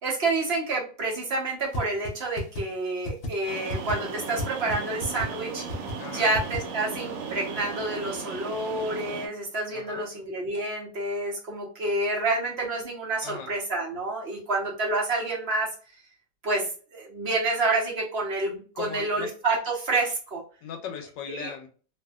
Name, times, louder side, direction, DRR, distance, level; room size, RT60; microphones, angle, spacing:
voice 1, 0.0-5.7 6.0-15.7 16.4-20.4 21.3-21.5, right 2 dB, 45° right, -2 dB, 0.9 m, -28 dB
sound 1, 1.7-1.8 2.0-2.1 2.4-2.6 3.0-3.3 3.7-3.9 4.4-4.5 4.7-4.8 5.0-5.3 5.7-5.9 6.3-6.6, left 1 dB, 55° left, 0.6 m, -31 dB
sound 2, 3.5-9.3, right 5 dB, 80° right, 1.4 m, -36 dB
voice 2, 6.0-6.3 9.7-10.1 13.2-13.5 18.7-19.3 20.6-21.7, left 6 dB, 80° left, 5 dB, 1.3 m, -38 dB
2.9 x 2.6 x 2.3 m, 0.39 s
omnidirectional pair, 2.0 m